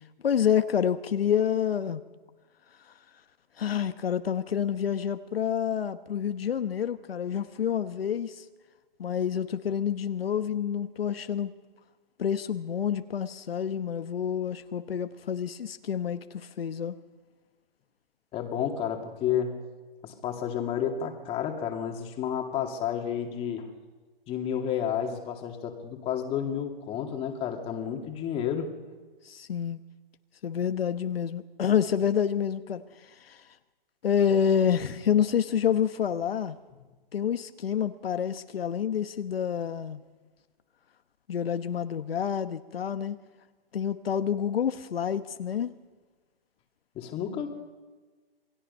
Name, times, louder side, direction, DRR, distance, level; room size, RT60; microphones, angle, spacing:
voice 1, 0.2-2.0 2.8-2.9 3.6-8.4 9.0-11.5 12.2-17.0 29.2-29.8 30.4-33.5 34.0-36.6 37.1-40.0 41.3-43.2 43.7-45.8, left 8 dB, 75° left, 10 dB, 1.1 m, -28 dB
voice 2, 18.3-19.5 20.0-23.7 24.3-28.7 46.9-47.5, left 8 dB, 20° left, 3 dB, 2.4 m, -31 dB
27.5 x 19.5 x 5.5 m, 1.3 s
hypercardioid pair, 145°, 30 cm